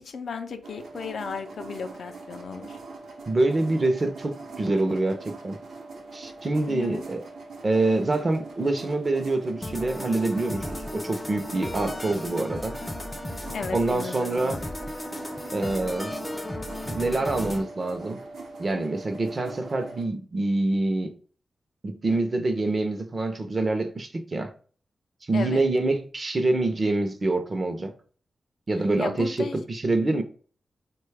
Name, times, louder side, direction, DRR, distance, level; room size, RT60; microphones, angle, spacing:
voice 1, 0.0-2.8 6.7-7.0 13.5-14.6 22.1-22.2 25.3-25.6 29.0-29.6, left 5 dB, 80° left, 0.4 m, -35 dB
sound 1, 0.6-20.0, right 3 dB, 90° right, 0.8 m, -42 dB
voice 2, 3.3-5.6 6.1-7.2 7.6-12.8 13.7-14.6 15.5-16.1 16.8-18.2 18.6-21.1 21.8-24.5 25.3-27.9 28.7-30.2, right 2 dB, 40° right, 0.5 m, -26 dB
sound 2, 9.6-17.6, left 1 dB, 15° left, 0.4 m, -35 dB
3.9 x 2.2 x 3.2 m
wide cardioid pair, 95°, 0 cm